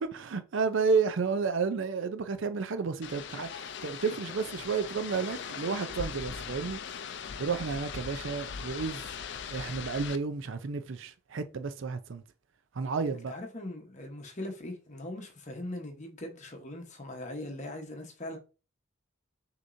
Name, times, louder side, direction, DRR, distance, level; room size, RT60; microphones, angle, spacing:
voice 1, 0.0-6.8 7.4-9.0 9.5-12.2 12.8-13.3, right 5 dB, 65° right, 0.5 m, -31 dB
sound 1, 3.0-10.2, left 6 dB, 55° left, 0.4 m, -40 dB
voice 2, 13.1-18.4, left 1 dB, 35° left, 1.0 m, -40 dB
6.3 x 2.9 x 2.6 m
head